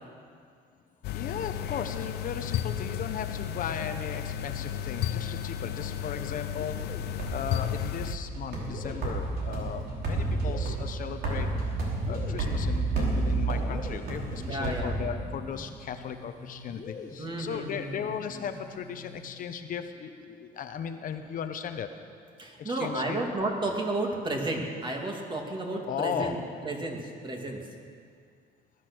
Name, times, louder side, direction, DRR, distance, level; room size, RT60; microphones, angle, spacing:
sound 1, 1.0-8.2, left 10 dB, 75° left, 0.7 m, -33 dB
voice 1, 1.1-6.8 7.3-11.5 12.1-21.9 22.6-23.2 25.9-26.4, left 8 dB, 55° left, 7 dB, 1.0 m, -36 dB
sound 2, 6.5-19.4, left 4 dB, 35° left, 2.2 m, -47 dB
sound 3, 6.8-15.6, right 2 dB, 65° right, 4.4 m, -31 dB
voice 2, 14.4-15.1 17.2-18.0 22.4-26.4 26.6-27.6, right 2 dB, 30° right, 1 dB, 2.7 m, -32 dB
20.0 x 11.0 x 6.3 m, 2.2 s
cardioid pair, 110°, 17 cm